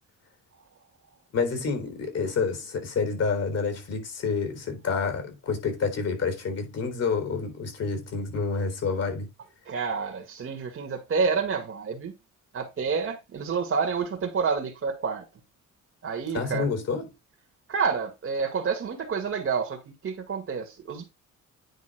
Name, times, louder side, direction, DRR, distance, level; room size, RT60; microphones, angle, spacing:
voice 1, 1.3-9.3 16.3-17.1, left 5 dB, 55° left, 4.0 m, -28 dB
voice 2, 9.7-12.1 12.5-15.2 16.0-16.7 17.7-21.1, right 5 dB, 45° right, 2.0 m, -29 dB
9.6 x 3.6 x 5.0 m
cardioid pair, 90°, 30 cm